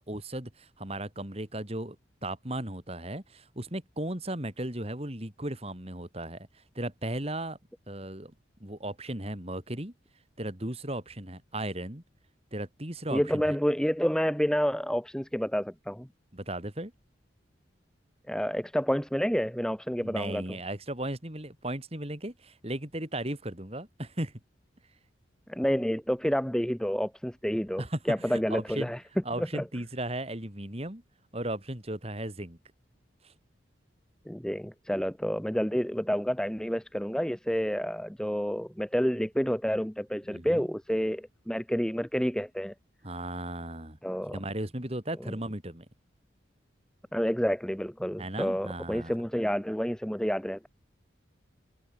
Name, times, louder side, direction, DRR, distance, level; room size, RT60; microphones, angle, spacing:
voice 1, 0.0-2.0 2.2-7.6 7.9-8.3 8.6-9.9 10.4-12.0 12.5-13.4 16.3-16.9 20.0-24.3 27.8-28.9 29.2-31.0 31.3-32.6 33.2-33.3 40.3-40.7 43.0-44.0 44.3-45.8 48.2-49.1, right 1 dB, 30° right, 3.2 m, -36 dB
voice 2, 13.1-16.1 18.3-20.4 25.5-29.0 29.4-29.6 34.3-42.7 44.0-44.4 45.2-45.3 47.1-50.7, equal, 5° left, 0.9 m, -29 dB
head